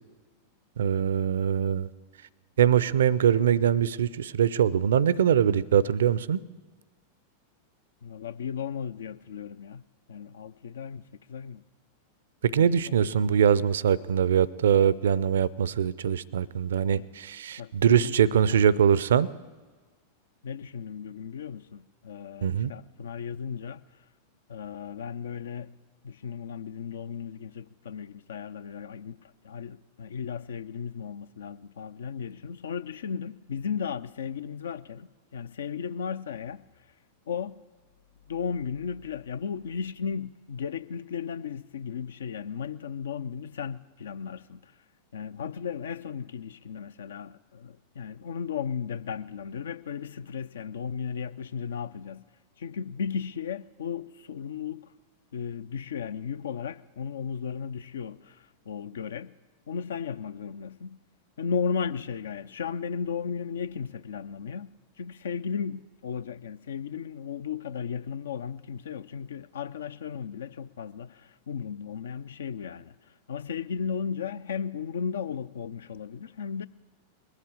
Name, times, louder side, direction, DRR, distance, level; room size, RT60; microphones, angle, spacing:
voice 1, 0.8-1.9 2.6-6.4 12.4-19.3 22.4-22.7, right 8 dB, 65° right, 0.4 m, -23 dB
voice 2, 8.0-9.8 10.1-11.6 12.6-13.4 16.9-17.1 17.6-18.2 18.5-18.6 20.4-24.0 24.5-25.8 26.0-36.6 37.3-37.6 38.3-44.7 45.1-52.2 52.6-54.9 55.3-59.3 59.7-61.0 61.4-64.7 65.0-76.7, left 7 dB, 65° left, 0.4 m, -35 dB
20.5 x 8.2 x 8.4 m
figure-of-eight pair, 90°, 0 cm